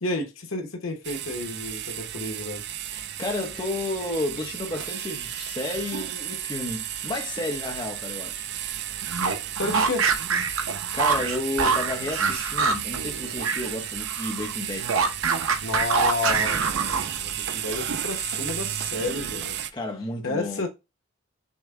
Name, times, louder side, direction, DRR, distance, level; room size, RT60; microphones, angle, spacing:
voice 1, 0.0-2.6 9.6-10.1 15.6-16.6 17.0-19.6 20.2-20.7, left 2 dB, 85° left, 1.1 m, -30 dB
sound 1, 1.0-19.7, right 10 dB, 55° right, 0.4 m, -33 dB
voice 2, 2.9-8.5 10.9-15.1 19.7-20.6, left 2 dB, 20° left, 0.8 m, -32 dB
sound 2, 9.0-13.7 14.0-17.3, right 5 dB, 85° right, 0.7 m, -25 dB
6.3 x 2.2 x 3.7 m
head